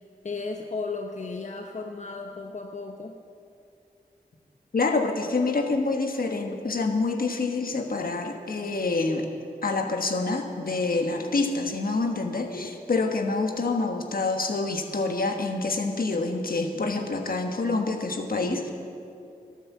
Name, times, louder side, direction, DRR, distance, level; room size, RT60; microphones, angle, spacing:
voice 1, 0.0-3.1, left 3 dB, 50° left, 3 dB, 0.8 m, -35 dB
voice 2, 4.7-9.3 9.6-18.7, left 3 dB, 65° left, 4 dB, 1.3 m, -27 dB
12.0 x 9.3 x 7.3 m, 2.5 s
cardioid pair, 45°, 16 cm